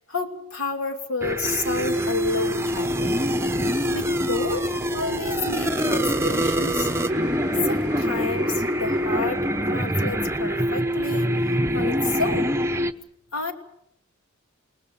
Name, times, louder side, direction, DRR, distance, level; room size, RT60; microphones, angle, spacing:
voice 1, 0.0-3.2 3.9-6.9 7.6-11.3 11.7-12.6 13.3-13.5, left 3 dB, 75° left, 5 dB, 2.9 m, -30 dB
sound 1, 1.2-12.9, equal, 10° right, 0.9 m, -24 dB
Cheering / Applause, 5.5-10.5, left 1 dB, 10° left, 3.3 m, -47 dB
29.5 x 19.0 x 6.9 m, 0.75 s
head